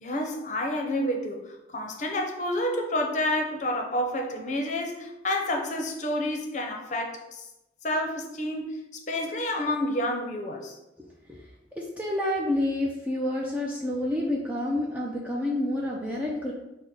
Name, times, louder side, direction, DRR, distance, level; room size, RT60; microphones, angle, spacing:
voice 1, 0.0-7.4 7.8-10.8, left 1 dB, 40° left, 2 dB, 0.6 m, -29 dB
voice 2, 11.0-11.4 11.8-16.5, left 1 dB, 10° right, -3 dB, 0.4 m, -29 dB
5.8 x 2.1 x 3.8 m, 0.94 s
head